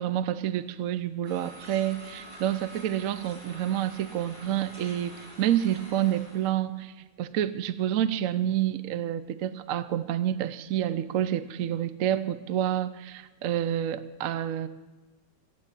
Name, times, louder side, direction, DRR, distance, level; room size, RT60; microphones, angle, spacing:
voice 1, 0.0-14.7, right 11 dB, 65° right, 13 dB, 0.9 m, -28 dB
sound 1, 1.2-6.5, right 1 dB, 80° right, 6.1 m, -47 dB
15.5 x 9.5 x 8.3 m, 1.2 s
omnidirectional pair, 1.9 m